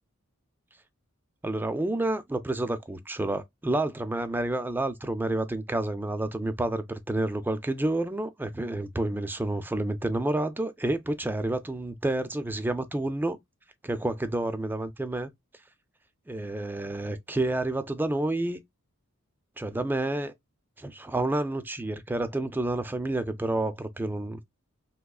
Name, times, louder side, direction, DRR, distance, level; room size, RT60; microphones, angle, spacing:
voice 1, 1.4-13.4 13.8-15.3 16.3-18.6 19.6-20.3 20.8-24.4, right 2 dB, 10° right, 0.3 m, -29 dB
3.5 x 3.0 x 2.3 m
head